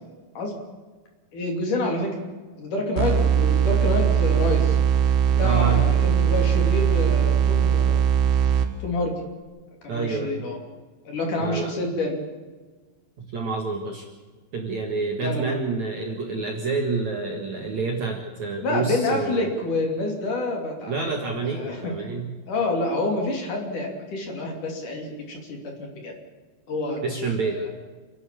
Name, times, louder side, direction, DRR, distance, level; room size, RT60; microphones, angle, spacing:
voice 1, 1.3-2.1 2.6-4.8 5.4-8.0 8.8-9.1 9.8-10.6 11.1-12.2 15.2-15.5 18.6-21.1 21.4-21.9 22.5-26.1 26.7-27.0 27.4-27.7, left 2 dB, 50° left, 2 dB, 4.1 m, -28 dB
sound 1, 3.0-9.0, right 8 dB, 90° right, 3.9 m, -20 dB
voice 2, 5.4-5.9 9.9-10.4 11.4-11.7 13.2-14.1 14.5-19.5 20.9-22.3 27.0-27.6, right 4 dB, 50° right, 2 dB, 2.4 m, -28 dB
28.0 x 11.5 x 8.6 m, 1.4 s
omnidirectional pair, 5.3 m